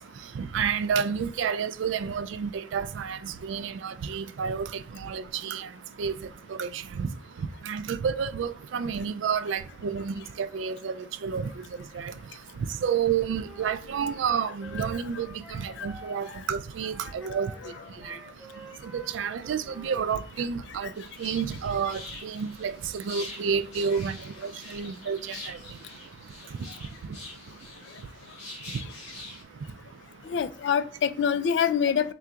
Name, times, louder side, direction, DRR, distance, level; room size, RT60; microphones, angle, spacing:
voice 1, 0.4-4.7 5.0-5.7 6.0-6.1 6.5-7.1 7.7-11.0 11.2-11.5 11.9-12.1 12.8-15.3 15.5-17.5 18.1-18.2 18.9-20.9 21.2-24.2 24.4-25.6, right 7 dB, 85° right, 0.3 m, -30 dB
Wind instrument woodwind instrument, 13.4-16.5 16.8-20.2, right 1 dB, 10° right, 0.5 m, -49 dB
sound 1, 20.9-29.4, left 2 dB, 40° left, 1.4 m, -45 dB
voice 2, 30.3-32.1, left 7 dB, 70° left, 0.3 m, -25 dB
3.8 x 2.4 x 4.4 m
head